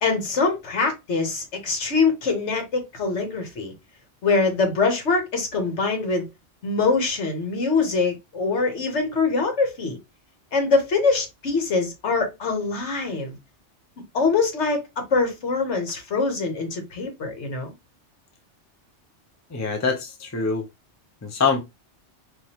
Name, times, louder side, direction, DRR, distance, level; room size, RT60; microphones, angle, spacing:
voice 1, 0.0-3.7 4.2-6.3 6.6-10.0 10.5-13.4 14.1-14.8 15.1-17.7, left 4 dB, 70° left, 1.4 m, -23 dB
voice 2, 19.5-20.7 21.2-21.6, left 5 dB, 20° left, 0.6 m, -24 dB
4.8 x 2.4 x 2.9 m
omnidirectional pair, 1.2 m